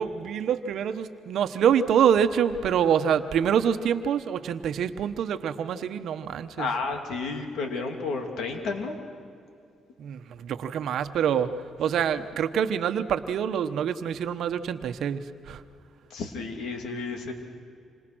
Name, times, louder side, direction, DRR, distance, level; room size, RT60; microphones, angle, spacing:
voice 1, 0.0-6.7 10.0-11.5 11.8-15.6, right 8 dB, 70° right, 10 dB, 1.1 m, -26 dB
voice 2, 6.6-8.9 16.1-17.3, left 4 dB, 75° left, 4 dB, 3.0 m, -31 dB
27.0 x 26.0 x 6.3 m, 2.4 s
cardioid pair, 90°, 0 cm